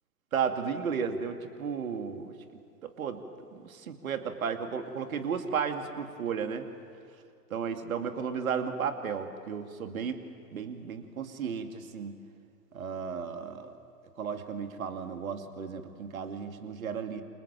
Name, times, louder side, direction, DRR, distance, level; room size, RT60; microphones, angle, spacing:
voice 1, 0.3-2.4 2.8-3.2 3.5-6.7 7.5-10.2 10.5-12.1 12.7-13.7 14.2-17.2, right 6 dB, 55° right, 7 dB, 2.5 m, -34 dB
28.0 x 27.5 x 7.5 m, 2.4 s
figure-of-eight pair, 115°, 50 cm